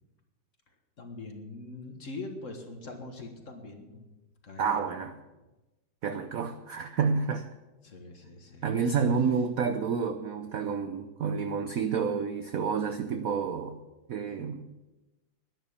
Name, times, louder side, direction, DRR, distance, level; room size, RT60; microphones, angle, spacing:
voice 1, 1.0-4.1 4.4-4.9 7.8-8.7, left 3 dB, 40° left, 4 dB, 1.7 m, -43 dB
voice 2, 4.6-5.2 6.0-7.5 8.6-13.8 14.1-14.7, right 6 dB, 70° right, 9 dB, 0.8 m, -29 dB
11.5 x 10.0 x 7.1 m, 1.1 s
omnidirectional pair, 2.2 m